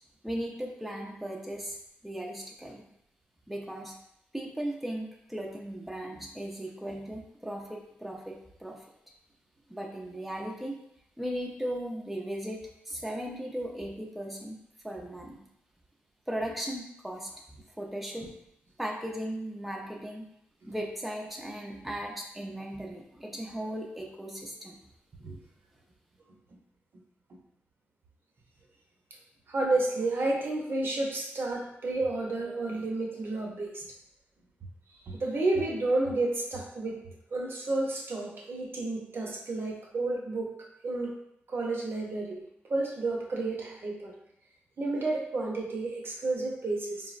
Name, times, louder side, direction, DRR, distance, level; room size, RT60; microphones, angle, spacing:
voice 1, 0.2-1.8 2.0-2.8 3.5-3.9 4.3-8.8 9.7-10.7 11.2-14.6 14.8-15.4 16.3-17.3 17.8-18.3 18.8-20.3 20.7-24.8, right 1 dB, ahead, -1 dB, 0.5 m, -37 dB
voice 2, 29.5-33.8 35.1-37.0 37.3-40.5 40.8-41.2 41.5-44.1 44.8-47.2, right 2 dB, 60° right, -1 dB, 0.6 m, -31 dB
3.6 x 2.0 x 2.4 m, 0.77 s
cardioid pair, 65°, 4 cm